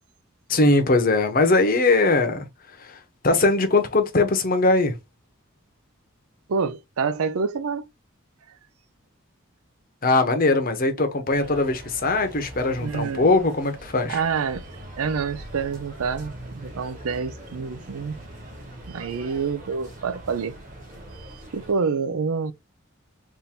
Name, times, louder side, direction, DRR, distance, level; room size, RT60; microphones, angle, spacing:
voice 1, 0.5-2.5 2.8-3.0 3.2-4.9 10.0-14.2, left 2 dB, 40° left, 0.8 m, -20 dB
voice 2, 6.5-7.9 11.0-11.1 12.8-13.3 14.1-14.7 15.0-18.2 18.9-20.5 21.2-22.5, right 5 dB, 80° right, 0.5 m, -27 dB
sound 1, 11.3-21.7, right 1 dB, 35° right, 1.5 m, -42 dB
3.7 x 2.6 x 4.3 m
head